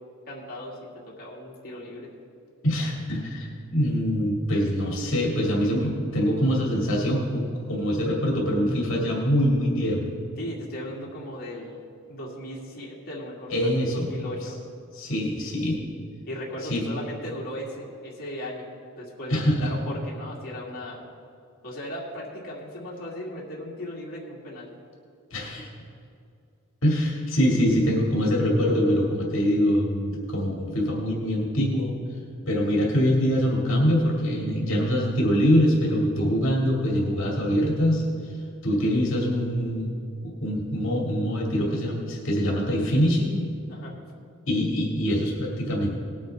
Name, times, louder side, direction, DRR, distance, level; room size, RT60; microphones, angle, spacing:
voice 1, 0.3-0.8 1.1-2.1 10.4-11.8 12.1-14.6 16.3-18.7 19.0-21.0 21.6-24.7 43.7-44.0, left 1 dB, 45° left, -6 dB, 2.2 m, -37 dB
voice 2, 2.6-10.1 13.5-14.1 14.9-15.8 16.7-16.8 19.3-19.7 25.3-25.7 26.8-31.9 32.5-38.0 38.6-39.9 40.2-43.4 44.5-45.9, equal, 65° left, -3 dB, 2.1 m, -24 dB
19.0 x 8.6 x 3.4 m, 2.4 s
head